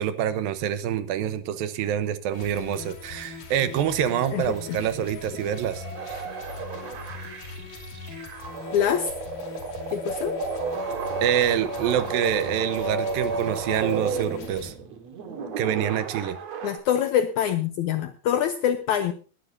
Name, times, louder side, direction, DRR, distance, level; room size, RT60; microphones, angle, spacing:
voice 1, 0.0-6.2 11.2-14.7 15.6-16.4, right 10 dB, 75° right, 2.6 m, -26 dB
sound 1, 2.3-14.7, left 4 dB, 60° left, 4.1 m, -41 dB
sound 2, 3.9-16.8, right 3 dB, 55° right, 2.6 m, -33 dB
voice 2, 4.3-4.8 8.7-9.1 9.9-10.4 16.6-19.1, left 9 dB, 75° left, 1.8 m, -25 dB
20.0 x 11.5 x 2.7 m
omnidirectional pair, 4.3 m